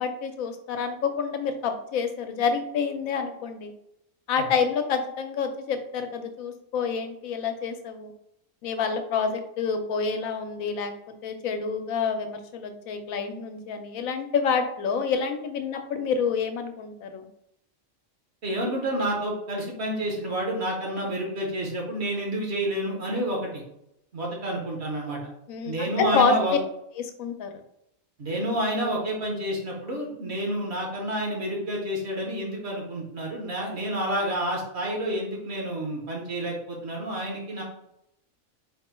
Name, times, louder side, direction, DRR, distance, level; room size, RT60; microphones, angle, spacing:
voice 1, 0.0-3.7 4.3-8.1 8.6-10.9 11.2-17.3 25.5-26.4 27.0-27.5, left 5 dB, 85° left, 7 dB, 1.0 m, -28 dB
voice 2, 18.4-23.6 24.1-25.2 25.6-26.6 28.2-37.6, right 1 dB, 55° right, -1 dB, 1.3 m, -29 dB
4.2 x 2.2 x 4.2 m, 0.78 s
omnidirectional pair, 1.4 m